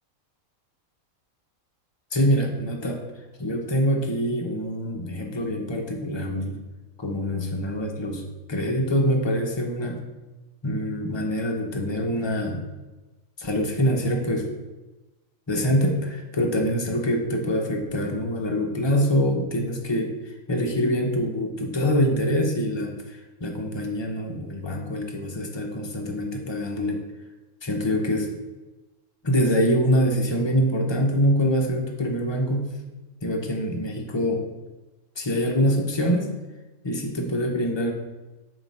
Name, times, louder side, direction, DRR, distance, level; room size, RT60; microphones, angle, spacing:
voice 1, 2.1-3.0 3.4-6.6 7.0-8.2 8.5-10.0 10.6-12.7 13.4-14.5 15.5-27.0 27.6-28.3 29.2-32.7 33.2-34.4 35.2-36.3 36.8-37.9, equal, 30° left, 2 dB, 0.5 m, -25 dB
7.4 x 2.9 x 5.4 m, 1.1 s
omnidirectional pair, 1.5 m